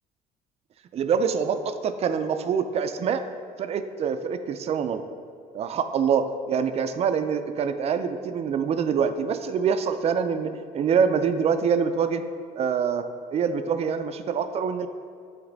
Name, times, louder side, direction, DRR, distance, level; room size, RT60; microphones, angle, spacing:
voice 1, 0.9-3.2 3.6-5.0 5.5-12.2 12.6-13.0 13.3-14.9, right 6 dB, 40° right, 9 dB, 0.4 m, -25 dB
7.8 x 3.1 x 3.8 m, 2.3 s
cardioid pair, 110°, 17 cm